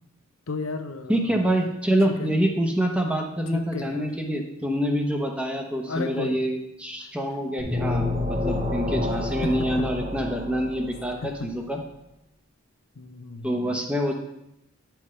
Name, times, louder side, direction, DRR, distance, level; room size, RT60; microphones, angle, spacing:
voice 1, 0.5-1.4 2.2-2.4 3.5-4.1 5.9-6.4 7.0-7.1 9.4-9.9 11.2-11.5 12.9-13.8, left 3 dB, 80° left, 8 dB, 0.7 m, -34 dB
voice 2, 1.1-11.2 11.4-11.8 13.4-14.1, equal, 5° right, 2 dB, 0.9 m, -26 dB
sound 1, 7.6-11.3, left 2 dB, 45° right, 2.5 m, -28 dB
9.6 x 5.7 x 3.2 m, 0.85 s
head